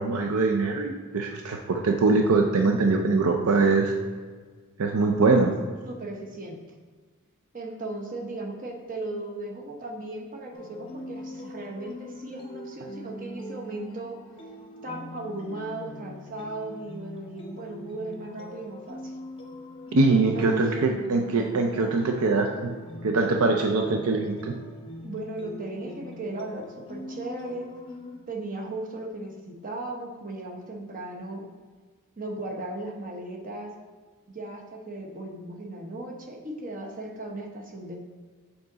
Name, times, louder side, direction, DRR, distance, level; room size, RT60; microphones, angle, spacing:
voice 1, 0.0-3.9 4.8-5.5 19.9-22.7 23.0-24.5, right 3 dB, 70° right, 3 dB, 0.5 m, -23 dB
voice 2, 5.8-6.6 7.5-14.2 14.8-19.1 20.1-20.9 25.0-27.7 28.3-31.4 32.2-33.7 34.3-38.0, right 2 dB, 40° right, 0 dB, 0.9 m, -36 dB
sound 1, 10.5-28.2, left 1 dB, 25° left, 0.8 m, -42 dB
6.9 x 3.8 x 3.9 m, 1.5 s
head